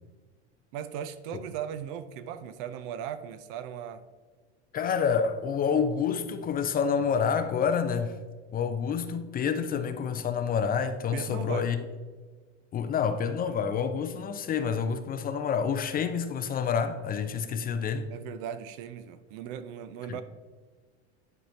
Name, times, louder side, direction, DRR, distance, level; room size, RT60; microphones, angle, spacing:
voice 1, 0.7-4.0 11.1-11.7 18.1-20.2, right 9 dB, 55° right, 0.6 m, -37 dB
voice 2, 4.7-8.2 8.5-11.8 12.7-18.1 20.1-20.2, left 6 dB, 25° left, 0.5 m, -28 dB
10.5 x 4.3 x 2.7 m
hypercardioid pair, 95°, 34 cm